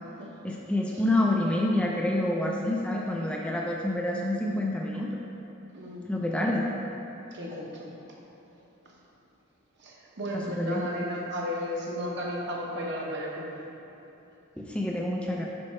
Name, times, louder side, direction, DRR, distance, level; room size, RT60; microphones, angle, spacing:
voice 1, 0.4-5.1 6.1-6.7 10.3-10.9 14.6-15.5, left 1 dB, 5° left, -2 dB, 0.4 m, -27 dB
voice 2, 7.3-7.9 9.8-13.6, equal, 55° right, -3 dB, 1.1 m, -34 dB
8.8 x 5.4 x 3.2 m, 2.9 s
head